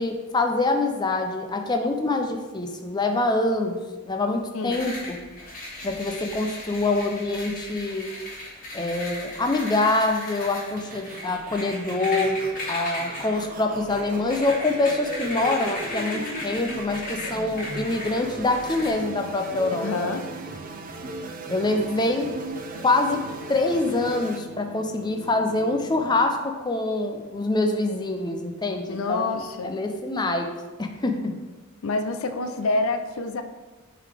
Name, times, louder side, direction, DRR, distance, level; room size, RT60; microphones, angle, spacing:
voice 1, 0.0-5.2 5.8-8.1 8.7-12.4 12.7-20.2 21.5-22.3 22.8-23.2 23.5-30.5 30.8-31.3, left 2 dB, 20° left, 4 dB, 0.5 m, -25 dB
voice 2, 4.5-4.9 19.8-20.2 28.9-29.8 31.8-33.4, left 3 dB, 70° left, 8 dB, 0.5 m, -27 dB
sound 1, 4.7-18.9, left 1 dB, 40° left, 1.9 m, -37 dB
sound 2, 10.8-24.4, right 2 dB, 40° right, 0.5 m, -37 dB
sound 3, 18.2-26.2, right 3 dB, 85° right, 0.8 m, -44 dB
7.9 x 3.9 x 3.4 m, 1.3 s
head